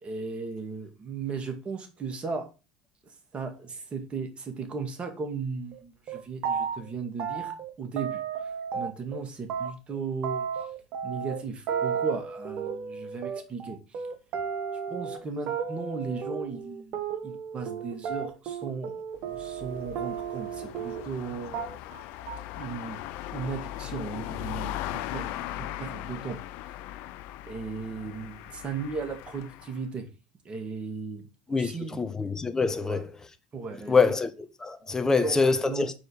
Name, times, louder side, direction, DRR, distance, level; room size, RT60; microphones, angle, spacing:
voice 1, 0.0-2.5 3.1-7.5 7.8-10.7 11.0-14.0 14.9-21.7 22.6-23.0 23.3-26.4 27.4-30.1 30.4-32.0 32.8-33.0 33.5-34.1 35.0-35.9, right 4 dB, 35° right, 2.2 m, -36 dB
sound 1, 5.7-5.8 6.1-6.9 7.2-9.2 9.5-21.2 21.5-22.0 22.3-22.6, right 7 dB, 55° right, 1.3 m, -33 dB
sound 2, 19.2-29.8, left 13 dB, 65° left, 0.6 m, -39 dB
voice 2, 31.5-33.1 33.9-35.9, left 4 dB, 15° left, 0.9 m, -25 dB
6.3 x 4.8 x 6.5 m
hypercardioid pair, 75°, 3 cm